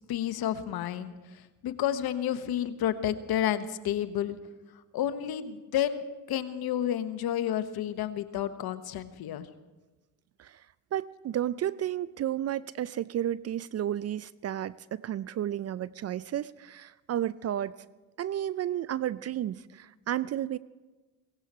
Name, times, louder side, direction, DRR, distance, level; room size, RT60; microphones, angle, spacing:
voice 1, 0.1-4.3 4.9-9.5, left 10 dB, 60° left, 11 dB, 1.2 m, -31 dB
voice 2, 10.9-17.7 18.2-20.6, right 11 dB, 40° right, 18 dB, 0.4 m, -32 dB
17.0 x 16.5 x 4.3 m, 1.2 s
hypercardioid pair, 65°, 42 cm